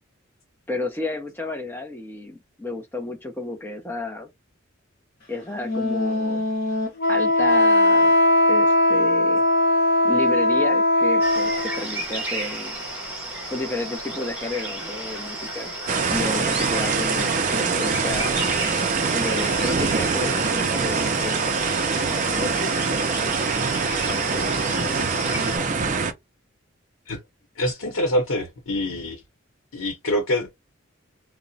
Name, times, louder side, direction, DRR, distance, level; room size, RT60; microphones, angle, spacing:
voice 1, 0.7-4.3 5.3-6.4 7.1-8.2 8.5-9.4 10.0-12.8 13.5-15.7 16.1-18.4 19.1-21.5 22.1-23.5 24.0-26.0, left 2 dB, 10° left, 0.6 m, -32 dB
Wind instrument woodwind instrument, 5.6-11.8, left 1 dB, 50° left, 0.8 m, -19 dB
sound 1, 11.2-25.6, right 1 dB, 10° right, 1.1 m, -32 dB
sound 2, 15.9-26.1, right 4 dB, 40° right, 0.4 m, -24 dB
voice 2, 27.6-29.2 29.7-30.6, left 1 dB, 90° left, 0.8 m, -25 dB
2.8 x 2.0 x 2.6 m
head